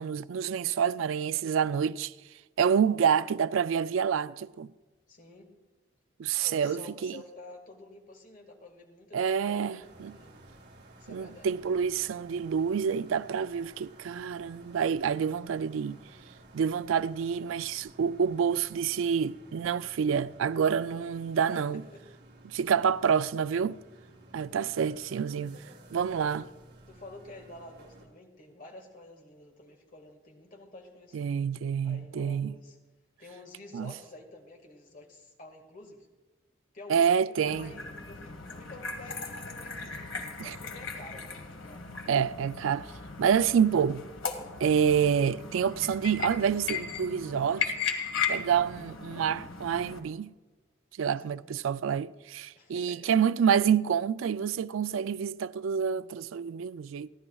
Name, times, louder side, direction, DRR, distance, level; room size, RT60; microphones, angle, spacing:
voice 1, 0.0-2.1 2.6-4.7 6.2-7.1 9.1-10.1 11.1-16.0 16.5-21.8 22.5-23.8 24.3-25.6 25.9-26.4 31.1-32.5 33.7-33.9 36.9-37.7 40.4-40.6 42.1-42.9 43.2-44.0 44.6-47.7 48.3-50.3 51.0-57.1, right 7 dB, 85° right, 0.3 m, -28 dB
voice 2, 5.1-5.5 6.4-10.4 11.0-11.5 21.5-22.0 26.2-26.3 26.9-31.3 31.8-32.8 33.2-36.1 36.7-40.1 40.4-41.9 51.2-51.5 52.6-53.1, left 2 dB, 45° left, 1.8 m, -50 dB
sound 1, 9.8-28.1, right 2 dB, 55° right, 2.5 m, -54 dB
sound 2, 37.5-50.0, left 6 dB, 85° left, 1.6 m, -37 dB
30.0 x 11.0 x 2.3 m
head